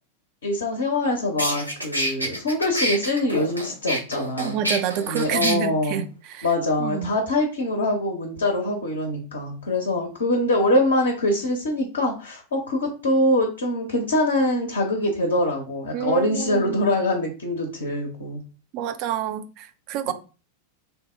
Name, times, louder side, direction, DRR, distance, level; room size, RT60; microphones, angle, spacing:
voice 1, 0.4-4.6 5.1-6.0 6.4-18.4 20.0-20.1, left 1 dB, 65° left, 0.6 m, -24 dB
sound 1, 0.9-1.0 1.4-5.5, equal, 85° right, 0.6 m, -27 dB
voice 2, 4.4-6.5 6.8-7.2 15.9-16.9 18.7-20.1, right 9 dB, 40° right, 0.3 m, -28 dB
2.8 x 2.0 x 3.4 m
figure-of-eight pair, 90°, 0 cm